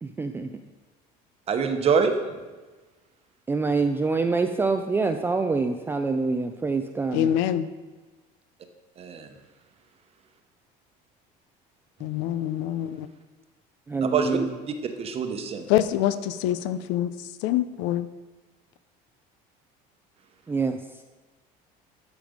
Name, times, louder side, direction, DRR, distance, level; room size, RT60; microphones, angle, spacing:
voice 1, 0.0-0.5 3.5-7.3 13.9-14.6 20.5-21.0, right 4 dB, 10° right, 6 dB, 0.4 m, -26 dB
voice 2, 1.5-2.1 9.0-9.3 14.1-14.4 14.8-15.7, right 6 dB, 35° right, 6 dB, 1.0 m, -25 dB
voice 3, 7.1-7.7 12.0-13.1 15.7-17.1 17.4-18.1, left 11 dB, 80° left, 13 dB, 0.6 m, -25 dB
13.0 x 5.1 x 5.2 m, 1.2 s
cardioid pair, 135°, 18 cm